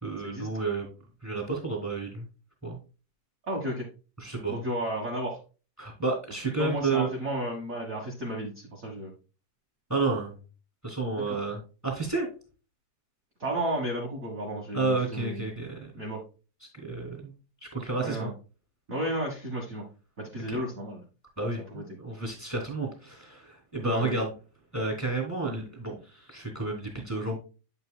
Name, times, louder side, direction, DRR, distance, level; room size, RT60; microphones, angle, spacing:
voice 1, 0.0-0.9 1.2-2.3 2.6-2.8 4.2-4.6 5.8-7.1 9.9-10.4 10.8-12.3 14.7-15.9 16.8-17.3 17.6-18.3 20.5-20.6 21.4-24.3 24.7-27.4, right 3 dB, 5° left, 0 dB, 2.0 m, -31 dB
voice 2, 3.4-3.9 4.5-5.4 6.6-9.1 11.3-11.4 13.4-15.5 15.9-16.2 18.0-18.3 18.9-19.8 20.2-21.0 21.7-21.8 23.8-24.1, right 1 dB, 45° right, -1 dB, 1.0 m, -33 dB
8.9 x 6.7 x 2.2 m, 0.33 s
omnidirectional pair, 3.7 m